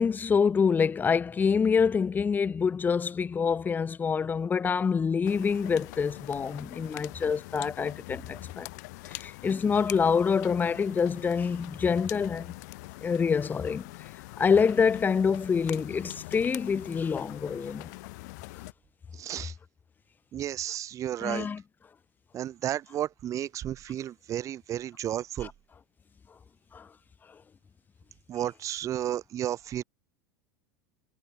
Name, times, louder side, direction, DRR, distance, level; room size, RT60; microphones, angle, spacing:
voice 1, 0.0-8.7 9.0-12.5 13.0-13.9 14.4-17.9 21.2-21.6 25.4-25.5 26.7-26.9, left 6 dB, 20° left, 0.6 m, -26 dB
sound 1, 5.2-18.7, left 23 dB, 70° left, 2.0 m, -44 dB
voice 2, 19.1-19.5 20.3-21.5 22.3-25.5 28.3-29.8, right 11 dB, 35° right, 0.6 m, -32 dB
supercardioid pair, 115°, 9 cm